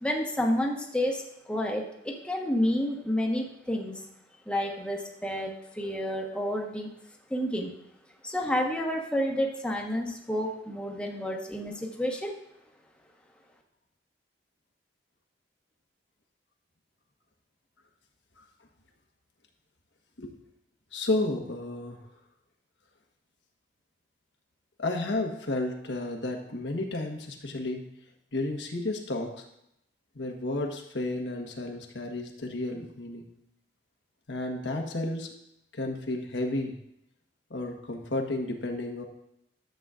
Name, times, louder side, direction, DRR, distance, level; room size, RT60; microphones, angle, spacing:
voice 1, 0.0-4.1 4.5-6.9 7.3-7.7 8.2-12.3, equal, 5° left, -1 dB, 1.2 m, -30 dB
voice 2, 20.9-22.0 24.8-27.8 28.3-29.4 30.1-33.3 34.3-35.3 35.7-36.7 37.5-39.0, left 2 dB, 90° left, 3 dB, 1.3 m, -32 dB
13.0 x 7.8 x 2.5 m, 0.79 s
head